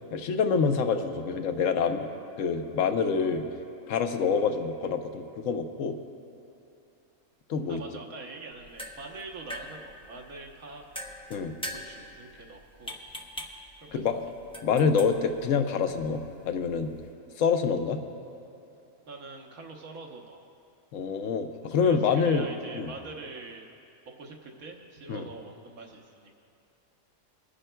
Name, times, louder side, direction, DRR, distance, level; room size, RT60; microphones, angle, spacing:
voice 1, 0.1-2.1 2.4-3.4 3.9-6.0 7.5-7.8 11.3-11.5 13.9-14.2 14.6-16.9 17.4-18.0 20.9-22.5 22.7-22.9 25.1-25.3, left 5 dB, 65° left, 7 dB, 1.0 m, -26 dB
voice 2, 7.7-10.9 11.8-13.0 13.8-14.0 19.1-20.5 21.8-23.7 24.2-26.3, right 3 dB, 75° right, 1 dB, 1.5 m, -44 dB
sound 1, 8.5-17.1, equal, 10° left, 0.3 m, -44 dB
27.5 x 10.0 x 2.3 m, 2.7 s
omnidirectional pair, 1.5 m